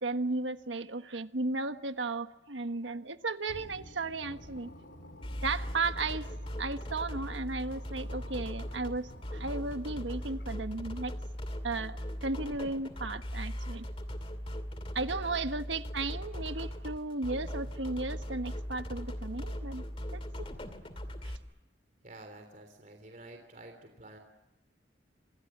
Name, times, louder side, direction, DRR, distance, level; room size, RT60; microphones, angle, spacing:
voice 1, 0.0-4.7 5.4-6.3 6.6-11.1 11.6-13.9 14.9-19.8 20.1-20.2 21.2-21.3, right 3 dB, 85° right, 1.4 m, -35 dB
sound 1, 3.5-10.7, left 1 dB, 75° left, 4.3 m, -51 dB
sound 2, 5.2-21.4, equal, 30° left, 2.5 m, -39 dB
voice 2, 22.0-24.2, right 2 dB, 45° right, 3.3 m, -50 dB
28.5 x 27.5 x 7.4 m
head